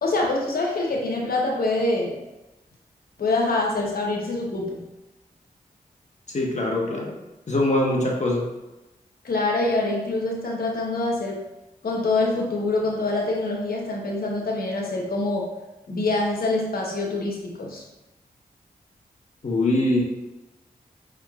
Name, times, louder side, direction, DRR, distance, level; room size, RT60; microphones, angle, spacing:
voice 1, 0.0-2.2 3.2-4.8 9.2-11.4 11.8-15.5 15.9-17.8, left 2 dB, 75° left, -1 dB, 1.0 m, -25 dB
voice 2, 6.3-7.1 7.5-8.4 19.4-20.0, left 1 dB, 50° left, -2 dB, 1.3 m, -23 dB
5.6 x 3.6 x 2.4 m, 1.0 s
cardioid pair, 45°, 15 cm